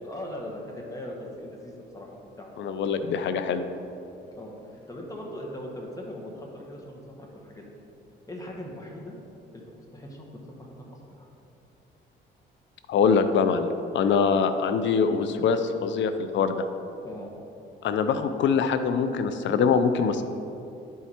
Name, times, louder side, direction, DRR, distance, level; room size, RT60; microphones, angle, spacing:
voice 1, 0.0-2.5 4.3-7.6 8.3-9.1 9.5-10.3 10.6-11.3 14.2-14.3 17.0-17.3, left 1 dB, 15° left, -1 dB, 1.6 m, -40 dB
voice 2, 2.6-3.7 12.9-13.7 13.9-16.7 17.8-20.2, left 6 dB, 70° left, 9 dB, 0.6 m, -23 dB
10.5 x 4.7 x 4.3 m, 2.7 s
cardioid pair, 90°, 20 cm